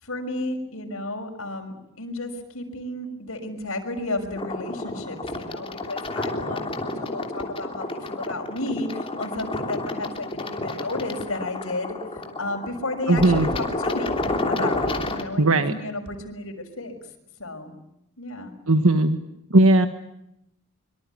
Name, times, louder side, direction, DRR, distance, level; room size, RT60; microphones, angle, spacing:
voice 1, 0.0-17.0 17.4-17.7 18.2-18.6, left 2 dB, 70° left, 4 dB, 6.1 m, -33 dB
sound 1, 4.3-15.2, left 2 dB, 25° left, 3.2 m, -30 dB
voice 2, 13.1-13.5 15.4-15.7 18.7-19.2 19.5-19.9, right 2 dB, 70° right, 9 dB, 1.6 m, -17 dB
24.5 x 24.5 x 9.5 m, 0.81 s
head